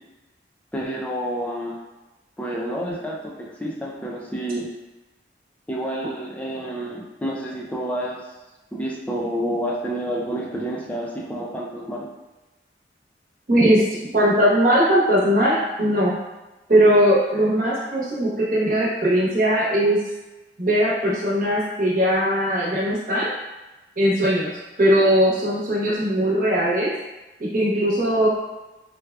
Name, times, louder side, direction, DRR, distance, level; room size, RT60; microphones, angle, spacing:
voice 1, 0.7-1.8 2.4-4.7 5.7-8.2 8.7-12.1, right 1 dB, 10° left, -4 dB, 0.4 m, -29 dB
voice 2, 13.5-13.8 14.1-16.2 16.7-20.0 20.6-23.3 24.0-24.5 24.8-26.9 27.4-28.3, equal, 50° right, -7 dB, 1.0 m, -19 dB
4.6 x 2.3 x 2.3 m, 1.1 s
head